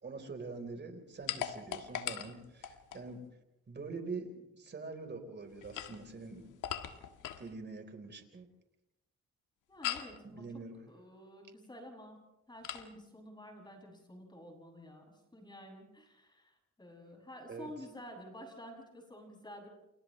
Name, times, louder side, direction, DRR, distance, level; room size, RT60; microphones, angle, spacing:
voice 1, 0.0-3.2 3.7-6.5 7.4-8.5 10.2-10.8 17.5-17.7, right 4 dB, 35° right, 5 dB, 4.3 m, -44 dB
sound 1, 1.3-3.1 5.5-7.5 9.8-10.2 12.6-12.9, left 11 dB, 85° left, 1.6 m, -40 dB
voice 2, 9.7-10.5 10.9-19.7, equal, 15° left, 1 dB, 7.3 m, -51 dB
30.0 x 28.5 x 3.3 m, 0.90 s
cardioid pair, 90°, 30 cm